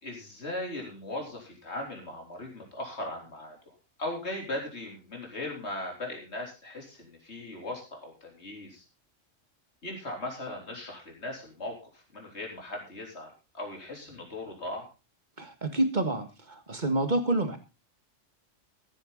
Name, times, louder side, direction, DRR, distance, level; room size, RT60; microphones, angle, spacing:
voice 1, 0.0-3.7 4.0-8.8 9.8-14.9, left 1 dB, 60° left, 1 dB, 4.0 m, -38 dB
voice 2, 15.4-17.6, right 1 dB, 35° right, 8 dB, 1.9 m, -28 dB
15.0 x 9.9 x 4.0 m, 0.30 s
omnidirectional pair, 1.3 m